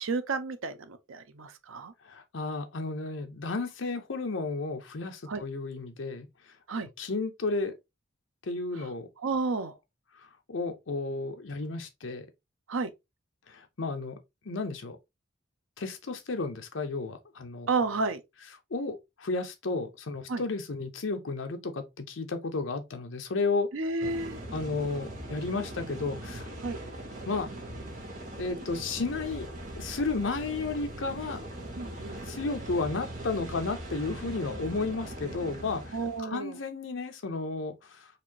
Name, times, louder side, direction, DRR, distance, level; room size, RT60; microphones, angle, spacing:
voice 1, 0.0-1.9 5.3-5.4 6.7-6.9 8.7-8.9 9.2-9.8 12.7-12.9 17.7-18.2 20.3-20.4 23.7-24.4 26.6-26.8 31.8-32.2 35.9-36.6, right 3 dB, 85° right, 0.6 m, -31 dB
voice 2, 2.0-6.3 7.0-7.8 8.4-9.1 10.5-12.3 13.5-14.2 14.4-15.0 15.8-17.7 18.7-23.7 24.5-26.5 27.3-27.5 28.4-31.5 32.3-35.9 36.2-38.2, left 3 dB, 70° left, 0.7 m, -33 dB
sound 1, 24.0-36.2, right 1 dB, 40° right, 1.0 m, -40 dB
4.2 x 2.6 x 2.8 m
head